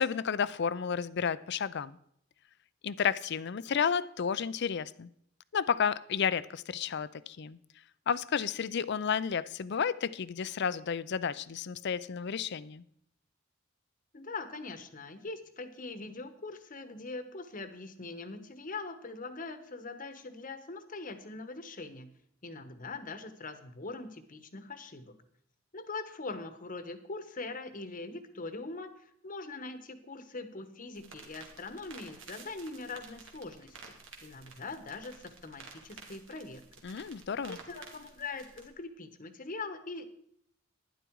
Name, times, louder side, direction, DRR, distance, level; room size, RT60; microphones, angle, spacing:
voice 1, 0.0-2.0 2.8-5.1 5.5-7.6 8.1-12.8 36.8-37.6, left 7 dB, 60° left, 0.5 m, -32 dB
voice 2, 14.1-22.1 22.4-25.1 25.7-33.8 34.2-36.6 37.7-40.1, left 3 dB, 45° left, 1.1 m, -42 dB
sound 1, 30.9-38.7, right 4 dB, 75° right, 2.2 m, -52 dB
11.5 x 10.5 x 4.7 m
head